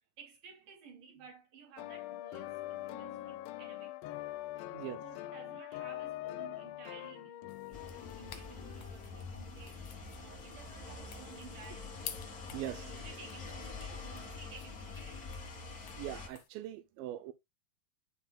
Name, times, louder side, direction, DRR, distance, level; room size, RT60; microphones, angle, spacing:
voice 1, 0.2-4.1 4.6-12.1 12.7-15.3, right 5 dB, 55° right, 4.2 m, -55 dB
sound 1, 1.8-9.4, left 15 dB, 90° left, 2.0 m, -43 dB
sound 2, 7.5-16.5, left 10 dB, 70° left, 3.0 m, -53 dB
sound 3, 7.7-16.3, left 4 dB, 40° left, 1.3 m, -46 dB
voice 2, 12.5-12.9 16.0-17.3, right 13 dB, 80° right, 2.1 m, -41 dB
10.0 x 5.9 x 2.2 m
omnidirectional pair, 4.7 m